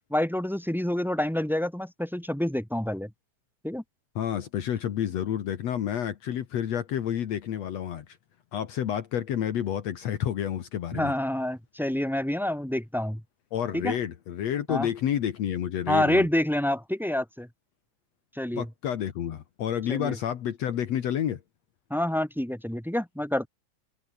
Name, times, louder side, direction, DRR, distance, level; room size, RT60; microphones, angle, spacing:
voice 1, 0.1-3.1 3.6-3.8 10.9-13.2 13.7-14.0 14.7-14.9 15.9-17.5 18.4-18.7 19.9-20.2 21.9-23.5, left 1 dB, ahead, 4.5 m, -27 dB
voice 2, 4.2-8.1 8.5-11.1 13.5-16.3 18.5-21.4, left 10 dB, 65° left, 2.6 m, -29 dB
omnidirectional pair, 3.3 m